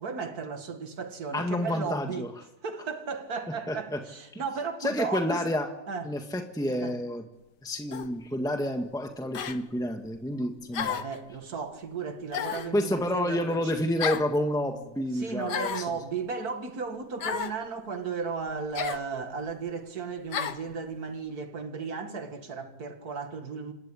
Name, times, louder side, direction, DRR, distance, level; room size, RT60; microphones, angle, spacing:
voice 1, 0.0-2.3 2.6-5.5 5.9-6.1 6.8-7.0 10.8-13.8 15.1-23.7, right 5 dB, 65° right, 2.5 m, -35 dB
voice 2, 1.3-2.3 3.7-4.0 4.3-4.4 4.8-5.7 6.0-7.2 7.6-11.0 12.7-15.9, left 1 dB, ahead, 1.8 m, -29 dB
sound 1, 7.9-8.1 9.3-9.6 10.7-11.2 12.3-12.7 14.0-14.3 15.5-15.9 17.2-17.6 18.7-19.0 20.3-20.6, left 8 dB, 85° left, 1.8 m, -32 dB
28.0 x 18.0 x 10.0 m
omnidirectional pair, 1.8 m